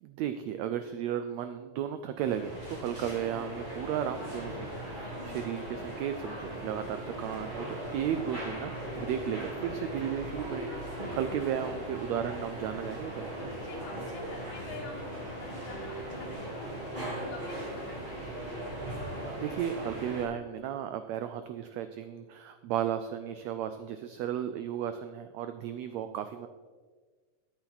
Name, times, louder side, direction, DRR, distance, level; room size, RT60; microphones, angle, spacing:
voice 1, 0.0-7.7 7.9-13.3 19.4-26.5, right 9 dB, 90° right, 10 dB, 1.5 m, -34 dB
sound 1, 2.2-20.2, right 1 dB, 15° right, 3.3 m, -39 dB
voice 2, 5.4-5.7 11.0-11.4 13.6-16.7 17.0-18.3, left 4 dB, 75° left, -1 dB, 3.7 m, -47 dB
14.0 x 8.7 x 4.0 m, 1.4 s
omnidirectional pair, 3.7 m